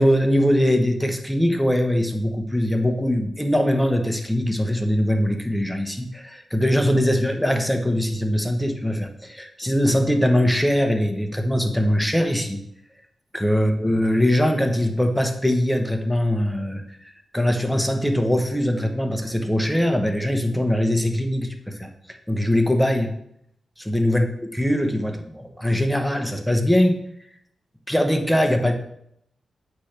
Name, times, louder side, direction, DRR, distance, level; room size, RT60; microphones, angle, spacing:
voice 1, 0.0-12.6 13.3-23.1 23.8-24.3 24.5-27.0 27.9-28.7, equal, 5° left, 5 dB, 1.1 m, -22 dB
8.2 x 3.4 x 5.9 m, 0.73 s
cardioid pair, 55°, 0 cm